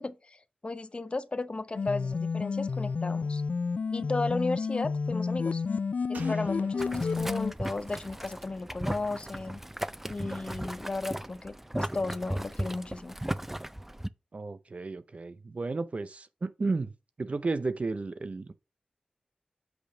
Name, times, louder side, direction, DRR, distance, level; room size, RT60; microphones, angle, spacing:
voice 1, 0.0-3.4 3.9-5.6 6.1-9.6 10.1-13.2, left 3 dB, 45° left, 0.7 m, -35 dB
sound 1, 1.8-7.5, left 5 dB, 75° left, 0.4 m, -30 dB
Slam, 6.1-9.6 9.9-10.0, right 4 dB, 90° right, 0.8 m, -51 dB
Boiling, 6.8-14.1, right 1 dB, 10° right, 0.4 m, -36 dB
voice 2, 14.3-16.9 17.2-18.5, right 3 dB, 55° right, 0.6 m, -33 dB
7.9 x 3.3 x 5.0 m
wide cardioid pair, 60°, 3 cm